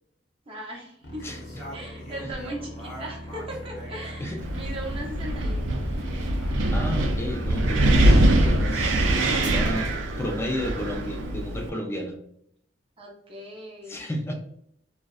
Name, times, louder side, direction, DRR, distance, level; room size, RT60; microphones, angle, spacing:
voice 1, 0.5-1.2 1.7-5.9 13.0-14.0, right 1 dB, 30° right, -1 dB, 0.6 m, -38 dB
sound 1, 1.0-9.1, left 1 dB, 70° left, 0.8 m, -37 dB
voice 2, 1.2-1.6 2.2-2.3 4.2-4.7 6.7-12.2 13.9-14.3, equal, 15° left, 2 dB, 0.4 m, -33 dB
sound 2, 1.2-4.8 5.7-6.6 8.4-8.9 9.4-10.9, equal, ahead, 0.9 m, -44 dB
Wind, 4.4-11.7, right 1 dB, 85° right, 0.4 m, -23 dB
2.6 x 2.0 x 2.3 m, 0.71 s
head